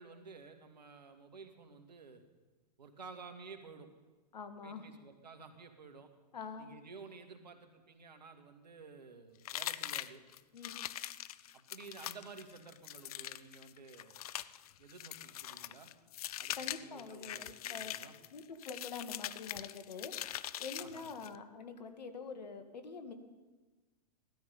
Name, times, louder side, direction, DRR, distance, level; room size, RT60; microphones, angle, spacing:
voice 1, 0.0-2.2 2.8-3.9 4.6-6.1 6.6-10.2 11.5-14.2 14.8-15.9 16.4-18.2 20.8-21.1, right 4 dB, 85° right, 6 dB, 2.0 m, -53 dB
voice 2, 4.3-4.9 6.3-6.7 10.5-10.8 16.6-17.9 18.3-23.1, left 5 dB, 80° left, 8 dB, 1.8 m, -46 dB
sound 1, 9.5-21.4, left 13 dB, 60° left, 0.6 m, -43 dB
17.0 x 13.0 x 5.4 m, 1.3 s
hypercardioid pair, 115°, 21 cm